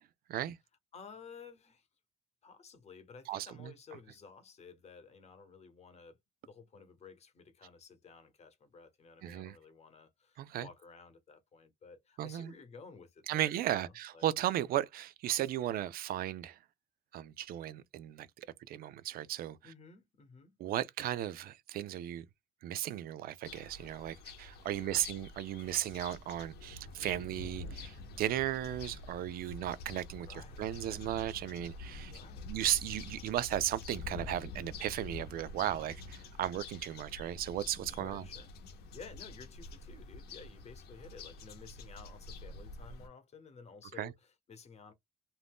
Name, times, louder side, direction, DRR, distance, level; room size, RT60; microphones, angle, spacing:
voice 1, 0.9-1.9 2.4-6.2 6.4-14.2 19.6-20.5 24.7-25.1 30.3-30.7 32.1-32.5 37.8-38.5 38.9-44.9, left 5 dB, 40° left, 0.9 m, -54 dB
voice 2, 3.3-3.7 9.2-9.6 10.4-10.7 12.2-12.5 13.3-16.6 17.1-19.7 20.6-22.3 22.6-30.3 30.6-32.1 32.5-38.3 44.0-44.1, right 12 dB, 60° right, 0.4 m, -35 dB
sound 1, 23.5-43.1, left 3 dB, 70° left, 0.8 m, -47 dB
2.6 x 2.2 x 3.4 m
cardioid pair, 110°, 17 cm